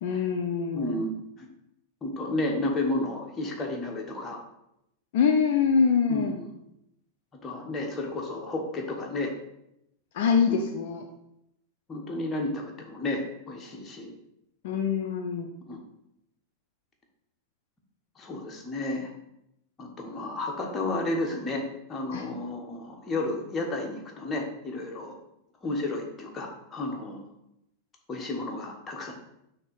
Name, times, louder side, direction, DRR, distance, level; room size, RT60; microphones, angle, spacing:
voice 1, 0.0-1.0 5.1-6.4 10.1-11.0 14.6-15.5 22.1-22.2, left 6 dB, 50° left, 4 dB, 0.5 m, -24 dB
voice 2, 0.7-1.5 2.0-4.4 6.1-6.5 7.4-9.3 10.5-10.7 11.9-14.1 15.7-15.8 18.2-19.1 19.8-25.1 25.6-27.2 28.1-29.1, left 2 dB, 20° left, 1 dB, 1.2 m, -32 dB
6.2 x 2.9 x 5.3 m, 0.81 s
figure-of-eight pair, 90°, 0 cm